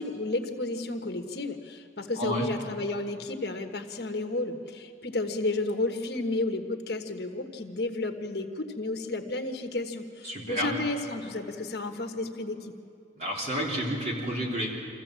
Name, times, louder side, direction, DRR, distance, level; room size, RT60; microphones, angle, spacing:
voice 1, 0.0-12.7, left 2 dB, 60° left, 5 dB, 1.3 m, -32 dB
voice 2, 2.2-2.5 10.2-10.7 13.2-14.7, equal, 35° right, -3 dB, 3.6 m, -30 dB
25.5 x 15.0 x 7.5 m, 2.7 s
head